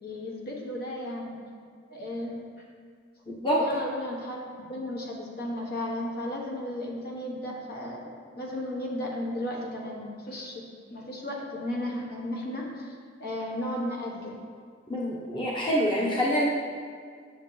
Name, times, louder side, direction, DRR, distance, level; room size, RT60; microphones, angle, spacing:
voice 1, 0.0-1.4 1.9-2.5 3.6-10.6 10.9-14.4, left 1 dB, 55° left, -2 dB, 1.4 m, -34 dB
voice 2, 3.3-3.6 14.9-16.5, equal, 25° left, -5 dB, 1.2 m, -26 dB
9.5 x 7.1 x 3.3 m, 2.1 s
head